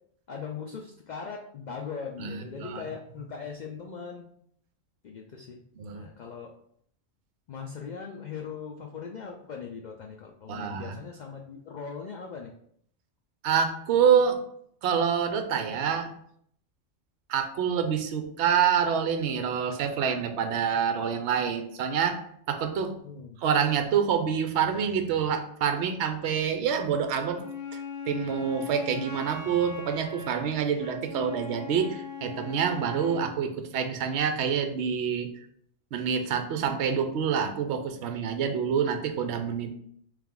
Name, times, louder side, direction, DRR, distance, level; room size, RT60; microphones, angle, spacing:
voice 1, 0.3-4.3 5.0-5.6 5.9-6.5 7.5-12.5 23.0-23.4, left 6 dB, 85° left, 1 dB, 0.4 m, -40 dB
voice 2, 2.2-2.8 5.8-6.1 10.5-10.9 13.4-14.4 14.8-16.1 17.3-22.9 23.4-27.4 28.1-35.3 35.9-39.7, right 7 dB, 65° right, 6 dB, 0.8 m, -27 dB
Wind instrument woodwind instrument, 27.3-33.4, left 5 dB, 20° right, 1.7 m, -40 dB
3.4 x 3.1 x 3.8 m, 0.66 s
omnidirectional pair, 1.3 m